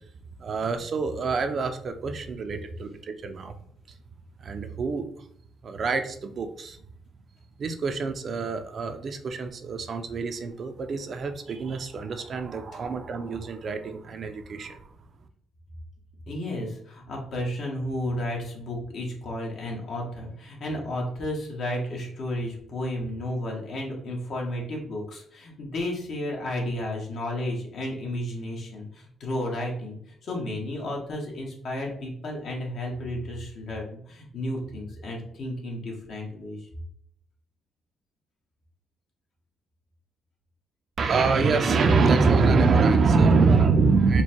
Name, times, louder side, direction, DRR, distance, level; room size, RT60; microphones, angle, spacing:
voice 1, 0.4-3.5 4.4-5.3 5.6-6.8 7.6-14.9 41.0-44.2, right 4 dB, 50° right, 7 dB, 0.6 m, -24 dB
voice 2, 16.3-36.7, left 1 dB, 60° left, -1 dB, 1.5 m, -32 dB
4.5 x 2.3 x 4.4 m, 0.66 s
cardioid pair, 90°, 0 cm